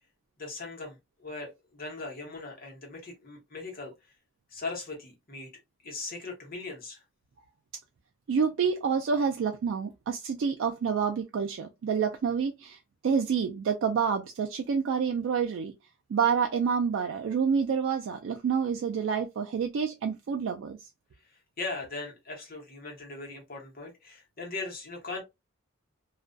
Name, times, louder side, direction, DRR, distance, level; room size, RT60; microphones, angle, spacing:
voice 1, 0.4-4.1 4.5-5.5 5.8-7.0 21.2-25.2, left 3 dB, 45° left, 0.9 m, -39 dB
voice 2, 8.3-15.7 16.1-20.8, right 6 dB, 65° right, 0.3 m, -28 dB
2.3 x 2.1 x 2.5 m
head